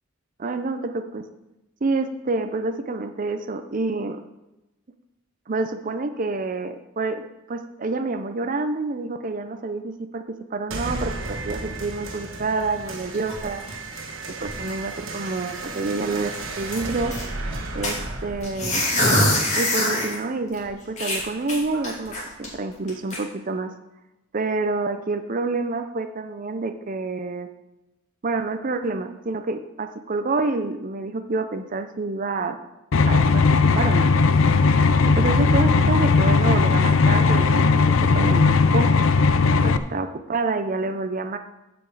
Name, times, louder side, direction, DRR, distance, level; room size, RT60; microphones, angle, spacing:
voice 1, 0.4-1.2 1.8-4.2 5.5-10.2 10.5-13.6 14.4-17.1 17.7-18.8 19.5-23.7 24.3-27.5 28.2-32.6 33.1-34.1 35.1-38.9 39.6-41.4, right 3 dB, 40° right, 7 dB, 0.6 m, -28 dB
sound 1, 10.7-19.7, right 2 dB, 65° right, 1.5 m, -34 dB
sound 2, 12.7-14.1 14.4-14.9 15.3-15.4 15.6-15.7 16.1-17.2 17.8-20.1 20.5-20.6 21.0-22.5 22.9-23.2, left 1 dB, 35° left, 3.0 m, -24 dB
sound 3, 32.9-39.8, left 4 dB, 70° left, 0.5 m, -18 dB
14.5 x 5.2 x 4.8 m, 0.95 s
head